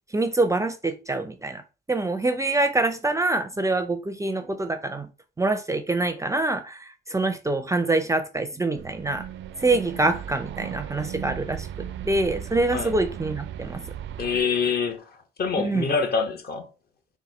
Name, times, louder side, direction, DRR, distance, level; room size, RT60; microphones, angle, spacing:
voice 1, 0.1-1.6 1.9-5.1 5.4-9.3 9.6-13.8 15.6-15.9, right 2 dB, 15° right, 0.4 m, -25 dB
sound 1, 8.7-14.4, right 10 dB, 75° right, 0.4 m, -36 dB
voice 2, 14.2-16.7, left 5 dB, 50° left, 1.0 m, -26 dB
4.1 x 2.2 x 4.2 m
cardioid pair, 90°, 20 cm